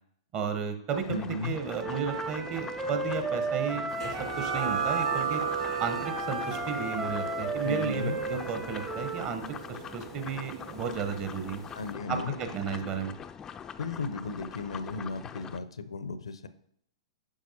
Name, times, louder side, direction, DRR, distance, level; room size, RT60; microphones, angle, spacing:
voice 1, 0.3-4.1 4.4-5.4 5.8-11.6 12.1-13.1, right 6 dB, 35° right, 7 dB, 1.0 m, -33 dB
sound 1, 0.9-15.6, left 7 dB, 20° left, 0.3 m, -44 dB
voice 2, 1.1-1.6 7.6-8.2 11.7-12.3 13.8-16.5, left 3 dB, 75° left, 13 dB, 0.5 m, -35 dB
Wind instrument woodwind instrument, 1.8-9.3, right 3 dB, 15° right, 0.6 m, -35 dB
sound 2, 4.0-11.2, right 6 dB, 65° right, 1.0 m, -35 dB
8.5 x 5.9 x 2.8 m, 0.69 s
figure-of-eight pair, 110°, 3 cm